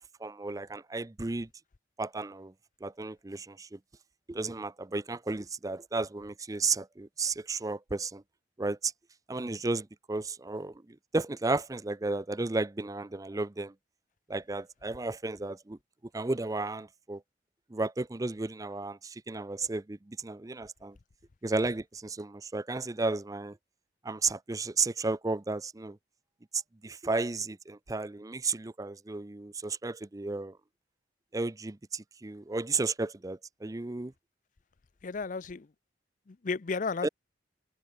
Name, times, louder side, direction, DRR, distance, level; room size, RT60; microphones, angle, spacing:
voice 1, 0.2-1.5 2.0-2.5 2.8-3.8 4.3-8.2 8.6-8.9 9.3-13.7 14.3-15.8 16.1-17.2 17.7-21.0 21.4-23.6 24.0-26.0 26.5-30.6 31.3-34.1 37.0-37.1, right 3 dB, 20° right, 0.5 m, -33 dB
voice 2, 35.0-35.7 36.3-37.1, left 4 dB, 45° left, 0.5 m, -33 dB
head